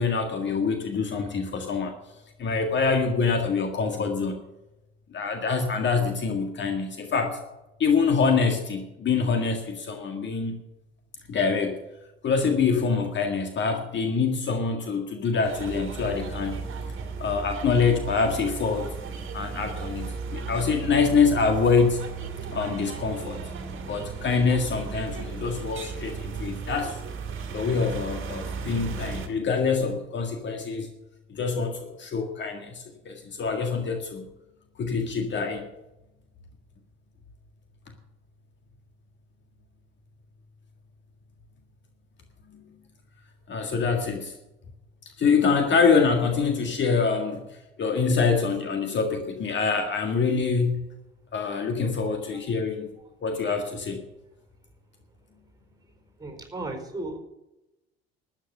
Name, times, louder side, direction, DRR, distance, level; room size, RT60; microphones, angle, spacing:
voice 1, 0.0-1.9 2.4-4.4 5.1-7.4 7.8-10.6 11.3-11.8 12.2-16.6 17.2-18.9 19.3-22.0 22.5-23.5 23.9-27.0 27.5-30.9 31.3-34.3 34.8-35.7 43.5-44.3 45.2-50.8 51.3-52.9 53.2-54.0, left 5 dB, 40° left, 5 dB, 1.8 m, -25 dB
sound 1, 15.4-29.3, right 5 dB, 40° right, 2.1 m, -35 dB
voice 2, 51.8-52.4 56.2-57.2, right 2 dB, 15° right, 5 dB, 4.2 m, -36 dB
13.0 x 9.0 x 6.7 m, 0.93 s
figure-of-eight pair, 60°, 30 cm